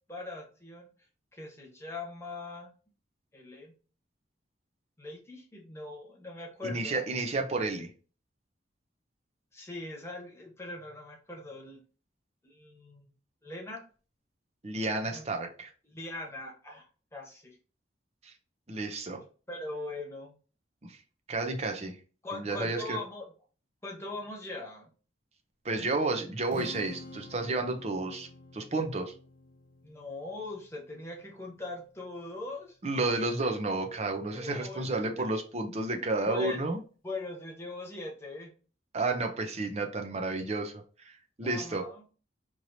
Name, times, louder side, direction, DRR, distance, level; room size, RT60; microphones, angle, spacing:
voice 1, 0.1-0.9 1.3-2.7 3.3-3.7 5.0-7.0 9.5-11.8 12.4-13.1 13.4-13.8 15.1-15.2 15.9-17.6 19.5-20.4 22.2-23.3 23.8-24.9 29.8-32.8 34.3-35.3 36.2-36.6 37.0-38.5 40.2-40.4 41.4-42.0, left 2 dB, 15° left, -1 dB, 1.1 m, -41 dB
voice 2, 6.6-7.9 14.6-15.7 18.2-18.3 18.7-19.2 20.8-21.0 21.3-22.0 22.3-23.0 25.6-28.3 28.5-29.1 32.8-36.8 38.9-40.7 41.0-41.9, right 2 dB, 35° right, 5 dB, 0.6 m, -31 dB
Strum, 26.5-32.7, left 2 dB, 50° left, 0.5 m, -50 dB
4.5 x 2.8 x 2.7 m, 0.37 s
head